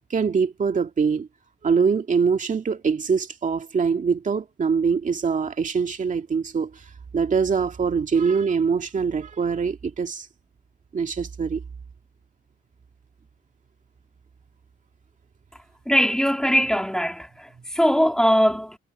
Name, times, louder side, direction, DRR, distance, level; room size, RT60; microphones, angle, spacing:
voice 1, 0.1-1.3 1.6-6.8 7.1-10.3 10.9-11.6, right 5 dB, 40° right, 2.2 m, -23 dB
voice 2, 15.9-18.8, equal, 5° left, 2.3 m, -21 dB
cardioid pair, 90°, 20 cm